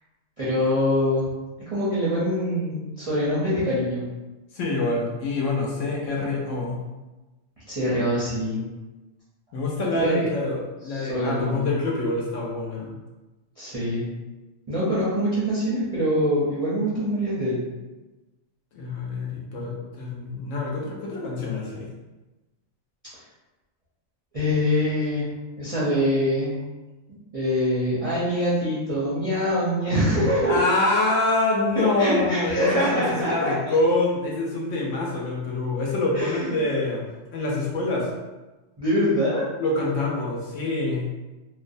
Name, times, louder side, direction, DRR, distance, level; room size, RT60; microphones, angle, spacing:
voice 1, 0.4-1.3 1.7-4.1 7.7-8.6 9.9-10.3 10.9-11.7 13.6-14.1 14.7-17.7 24.3-25.3 25.6-26.5 27.3-30.6 31.7-33.5 36.1-36.6 38.8-39.4, equal, 40° right, -10 dB, 0.5 m, -24 dB
voice 2, 4.5-6.8 9.5-12.9 18.7-21.9 30.5-38.1 39.6-41.1, left 2 dB, 70° left, -3 dB, 0.9 m, -26 dB
2.5 x 2.0 x 2.5 m, 1.1 s
omnidirectional pair, 1.4 m